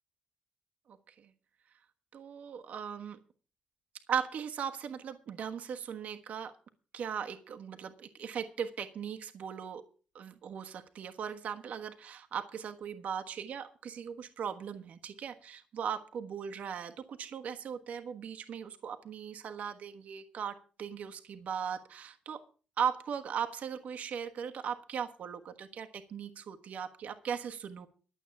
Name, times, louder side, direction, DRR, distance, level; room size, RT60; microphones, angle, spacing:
voice 1, 0.9-1.3 2.1-3.2 4.1-6.5 6.9-9.8 10.1-22.4 22.8-27.9, right 7 dB, 60° right, 6 dB, 1.3 m, -38 dB
12.0 x 8.1 x 7.1 m, 0.38 s
wide cardioid pair, 150°, 3 cm